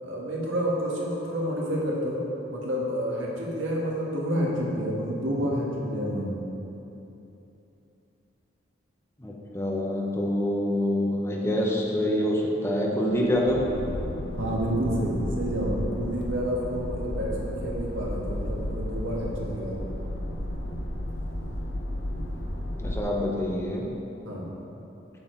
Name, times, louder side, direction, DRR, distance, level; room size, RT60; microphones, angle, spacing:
voice 1, 0.0-2.2 2.5-6.4 14.4-19.8 24.2-24.5, equal, 85° right, -4 dB, 1.6 m, -29 dB
voice 2, 9.2-13.6 22.8-23.8, left 1 dB, 15° left, -2 dB, 0.9 m, -26 dB
sound 1, 13.1-23.0, left 1 dB, 75° left, 0.8 m, -33 dB
7.6 x 6.7 x 4.5 m, 3.0 s
head